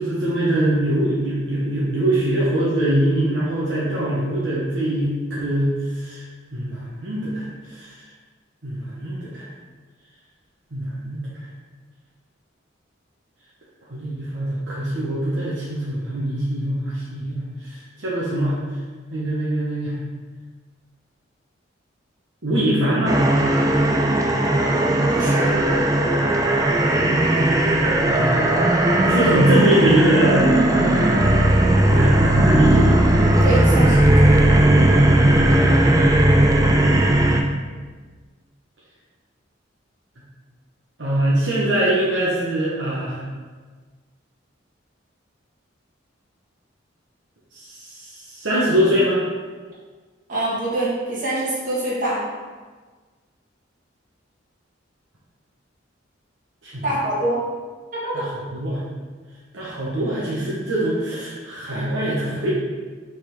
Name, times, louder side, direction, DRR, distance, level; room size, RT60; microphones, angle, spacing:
voice 1, 0.0-6.2 6.5-7.9 8.6-9.5 10.7-11.4 13.9-18.6 19.1-20.0 22.4-23.2 26.5-26.6 28.0-28.7 29.1-31.4 31.8-33.0 41.0-43.2 47.5-49.2 56.6-56.8 58.1-58.8 59.5-62.5, right 1 dB, 65° right, -8 dB, 1.3 m, -22 dB
sound 1, 23.1-37.4, right 1 dB, 20° right, 0.4 m, -17 dB
voice 2, 25.1-25.5 33.4-34.6 50.3-52.2 56.8-57.4 58.0-58.2, right 1 dB, 40° right, -7 dB, 2.0 m, -25 dB
5.7 x 4.1 x 4.6 m, 1.4 s
head